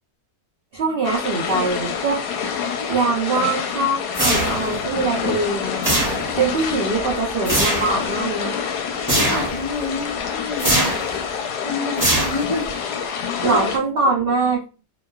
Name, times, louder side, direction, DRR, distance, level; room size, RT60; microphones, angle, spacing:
voice 1, 0.7-2.2 2.9-6.0 6.4-8.5 13.4-14.6, right 3 dB, 75° right, -2 dB, 0.5 m, -22 dB
sound 1, 1.0-13.8, left 7 dB, 90° left, 1.1 m, -27 dB
sound 2, 4.1-4.8 5.8-6.5 7.4-8.0 9.1-9.6 10.6-11.1 12.0-12.7, right 1 dB, 15° right, 0.7 m, -21 dB
voice 2, 9.1-11.0 11.6-12.7 13.4-13.7, left 2 dB, 60° left, -5 dB, 0.3 m, -28 dB
2.9 x 2.3 x 2.2 m, 0.34 s
omnidirectional pair, 1.6 m